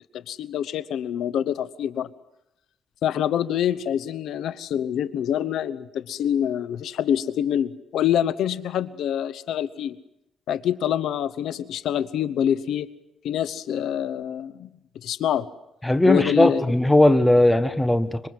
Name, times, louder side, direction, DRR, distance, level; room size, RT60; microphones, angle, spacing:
voice 1, 0.1-2.1 3.0-10.0 10.5-12.9 13.2-14.7 15.0-15.5 16.1-16.6, left 10 dB, 80° left, 16 dB, 0.9 m, -26 dB
voice 2, 15.8-18.3, left 1 dB, 10° left, 11 dB, 1.4 m, -18 dB
26.0 x 24.5 x 7.7 m, 0.87 s
cardioid pair, 125°, 0 cm